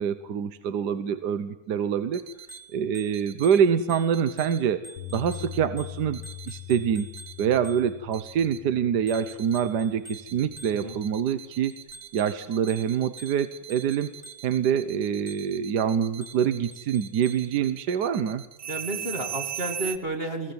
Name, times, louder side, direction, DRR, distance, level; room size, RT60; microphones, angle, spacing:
voice 1, 0.0-2.2 2.7-4.8 5.1-6.2 6.5-7.1 7.4-11.8 12.1-14.1 14.4-18.4, right 8 dB, 75° right, 12 dB, 1.5 m, -25 dB
sound 1, 2.1-2.6 3.1-3.6 4.1-4.6 5.1-5.6 6.1-6.6 7.1-7.6 8.1-8.6 9.1-9.6 10.1-20.0, right 9 dB, 60° right, 1.5 m, -40 dB
Bicycle bell, 2.3-8.2 9.1-11.2 11.7-14.7 15.3-15.7 16.2-17.6, right 2 dB, 10° right, 3.6 m, -49 dB
Bass guitar, 5.0-11.2, left 16 dB, 55° left, 1.7 m, -43 dB
voice 2, 18.7-20.5, right 2 dB, 35° right, 3 dB, 2.7 m, -31 dB
22.0 x 16.5 x 9.4 m, 1.0 s
omnidirectional pair, 1.8 m